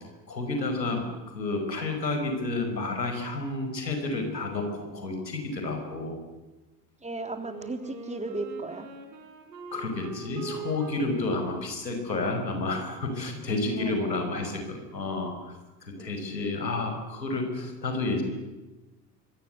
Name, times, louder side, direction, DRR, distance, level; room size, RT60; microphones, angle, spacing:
voice 1, 0.3-6.2 9.7-15.3 15.8-18.2, left 2 dB, 90° left, 5 dB, 5.6 m, -30 dB
voice 2, 7.0-8.9 13.6-14.2 16.0-16.2, right 2 dB, 15° right, 6 dB, 3.6 m, -36 dB
Wind instrument woodwind instrument, 7.4-14.1, right 3 dB, 80° right, 5.2 m, -44 dB
26.5 x 24.0 x 8.1 m, 1.1 s
hypercardioid pair, 70°, 49 cm